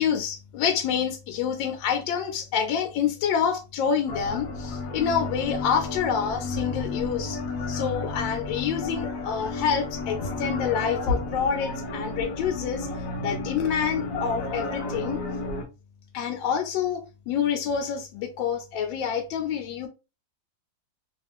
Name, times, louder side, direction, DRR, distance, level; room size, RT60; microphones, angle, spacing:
voice 1, 0.0-7.4 7.7-12.9 13.2-15.2 16.1-19.9, left 7 dB, 90° left, 1.3 m, -27 dB
sound 1, 4.1-15.6, left 3 dB, 65° left, 0.8 m, -32 dB
3.0 x 2.5 x 3.3 m
omnidirectional pair, 2.0 m